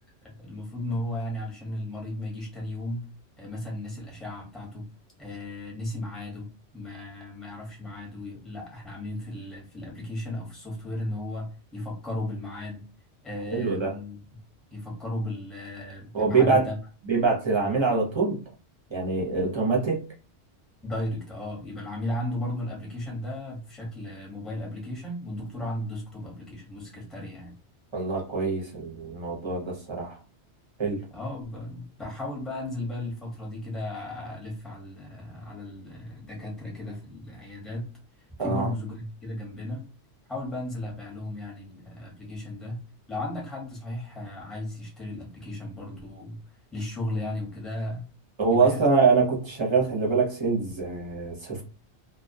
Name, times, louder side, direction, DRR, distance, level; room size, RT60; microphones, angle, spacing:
voice 1, 0.2-3.1 3.4-4.8 5.2-12.8 13.2-14.2 14.7-16.8 20.8-27.6 31.1-37.9 38.4-39.9 40.3-42.8 43.1-46.4 46.7-48.1 48.5-48.9, left 1 dB, ahead, -2 dB, 0.8 m, -35 dB
voice 2, 13.5-14.0 16.1-16.7 17.1-18.4 18.9-20.0 27.9-30.2 30.8-31.0 38.4-38.7 48.4-51.6, right 4 dB, 30° right, -1 dB, 0.6 m, -24 dB
2.2 x 2.2 x 2.6 m, 0.35 s
omnidirectional pair, 1.2 m